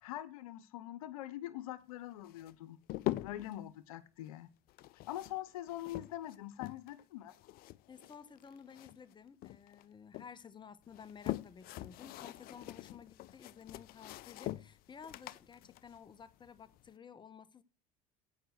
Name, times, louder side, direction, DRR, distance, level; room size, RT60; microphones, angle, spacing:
voice 1, 0.0-2.8 3.2-4.5 5.1-7.3, left 14 dB, 90° left, 0.9 m, -43 dB
sound 1, 2.3-3.6 4.7-7.0 7.3-9.1 9.4-10.3 10.8-16.9, left 16 dB, 60° left, 0.6 m, -43 dB
voice 2, 7.9-17.6, left 7 dB, 25° left, 1.3 m, -54 dB
16.0 x 5.7 x 6.5 m
supercardioid pair, 90°, 18 cm